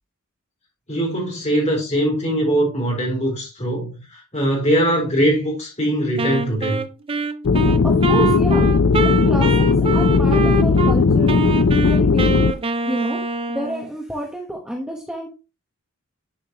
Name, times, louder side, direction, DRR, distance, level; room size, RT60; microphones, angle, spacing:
voice 1, 0.9-6.8, right 1 dB, 30° left, 4.0 m, -21 dB
Wind instrument woodwind instrument, 6.2-11.0 11.3-13.9, right 3 dB, 25° right, 0.4 m, -25 dB
sound 1, 7.4-12.5, left 4 dB, 60° left, 0.5 m, -16 dB
voice 2, 7.8-8.7 9.0-11.4 11.7-12.6 12.9-13.2 13.5-15.3, equal, 5° right, 1.0 m, -29 dB
10.5 x 5.2 x 2.9 m
head